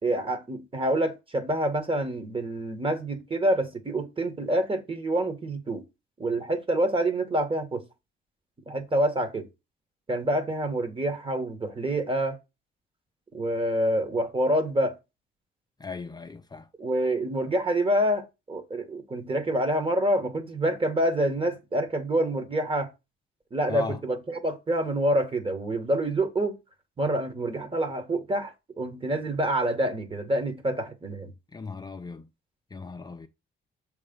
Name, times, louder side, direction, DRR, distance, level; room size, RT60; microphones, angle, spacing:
voice 1, 0.0-5.8 6.2-7.8 8.7-9.5 10.1-12.4 13.3-14.9 16.8-22.9 23.5-26.6 27.0-31.3, right 1 dB, 25° right, 1.4 m, -27 dB
voice 2, 15.8-16.7 23.7-24.0 31.5-32.3 32.7-33.3, left 4 dB, 20° left, 0.5 m, -37 dB
6.5 x 3.3 x 5.2 m
cardioid pair, 90°, 20 cm